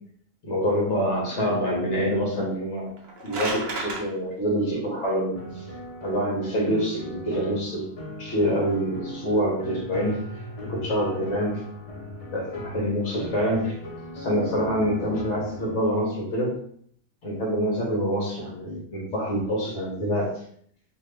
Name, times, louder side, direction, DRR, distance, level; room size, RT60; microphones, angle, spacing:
voice 1, 0.4-2.9 3.2-5.6 6.0-7.9 8.2-10.2 10.6-11.6 12.3-13.8 14.1-16.6 17.2-20.3, equal, 60° left, -3 dB, 1.2 m, -26 dB
sound 1, 2.9-4.0, right 2 dB, 55° right, 0.8 m, -31 dB
sound 2, 5.3-15.8, left 1 dB, 40° left, 0.5 m, -38 dB
2.8 x 2.3 x 3.2 m, 0.63 s
omnidirectional pair, 1.4 m